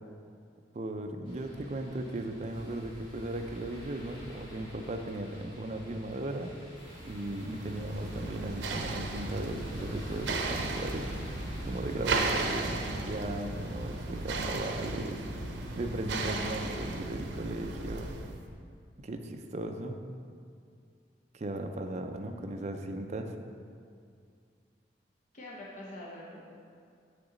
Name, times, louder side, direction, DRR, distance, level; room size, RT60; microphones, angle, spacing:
voice 1, 0.7-6.5 7.0-11.1 11.7-15.2 15.7-18.1 19.0-20.0 21.3-23.4, right 1 dB, 40° right, 5 dB, 0.5 m, -37 dB
sound 1, 1.2-16.3, equal, 30° left, 1.7 m, -46 dB
sound 2, 6.9-18.4, right 3 dB, 90° right, 0.6 m, -36 dB
voice 2, 22.2-22.8 25.3-26.5, left 1 dB, 45° left, -5 dB, 0.9 m, -46 dB
7.1 x 6.6 x 3.9 m, 2.3 s
head